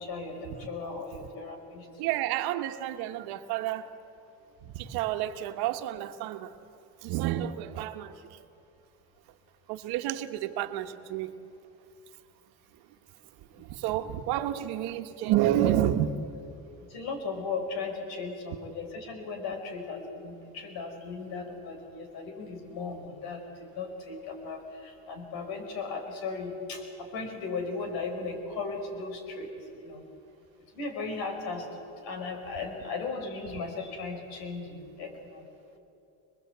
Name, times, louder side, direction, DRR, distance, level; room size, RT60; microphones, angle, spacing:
voice 1, 0.0-1.9 13.6-13.7 16.8-30.0 30.7-31.7 32.0-35.4, left 4 dB, 70° left, 5 dB, 5.3 m, -37 dB
voice 2, 2.0-3.9 4.6-6.6 7.0-8.4 9.7-11.4 13.5-16.2, right 12 dB, 75° right, 8 dB, 1.4 m, -30 dB
26.0 x 21.0 x 8.1 m, 2.7 s
cardioid pair, 110°, 38 cm